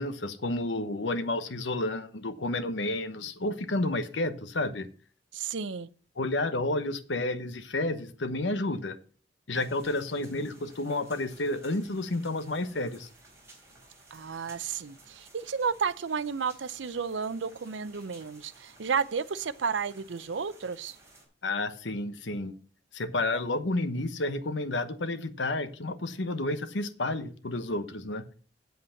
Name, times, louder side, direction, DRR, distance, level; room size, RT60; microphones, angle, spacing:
voice 1, 0.0-4.9 6.2-9.0 9.5-13.1 21.4-22.6 22.9-28.2, left 2 dB, 80° left, 1.0 m, -31 dB
voice 2, 5.3-5.9 14.1-21.0, right 6 dB, 80° right, 0.6 m, -32 dB
sound 1, 9.5-21.2, right 2 dB, 15° right, 4.3 m, -56 dB
8.0 x 7.9 x 5.8 m
head